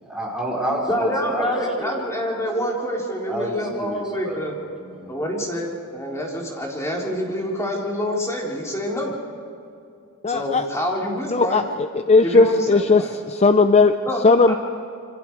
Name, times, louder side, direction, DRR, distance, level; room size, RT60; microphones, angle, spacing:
voice 1, 0.0-1.9 3.3-4.4 4.8-5.1, right 1 dB, 5° right, -4 dB, 5.2 m, -29 dB
voice 2, 0.9-4.5 5.1-9.1 10.3-11.6 12.2-13.1 14.1-14.4, equal, 15° left, -2 dB, 3.9 m, -26 dB
voice 3, 10.2-10.7 11.3-14.0 14.2-14.6, left 3 dB, 30° left, 9 dB, 0.6 m, -17 dB
28.0 x 25.5 x 4.7 m, 2.5 s
head